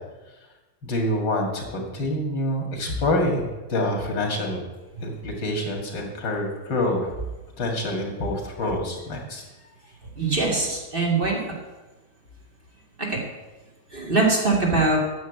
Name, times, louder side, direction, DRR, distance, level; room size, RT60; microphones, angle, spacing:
voice 1, 0.8-4.6 5.0-7.1 7.6-9.4, left 1 dB, 85° left, 1 dB, 2.8 m, -26 dB
voice 2, 10.2-11.4 13.0-13.2 13.9-15.0, right 3 dB, 30° right, -2 dB, 2.5 m, -22 dB
9.4 x 7.1 x 7.9 m, 1.2 s
omnidirectional pair, 1.9 m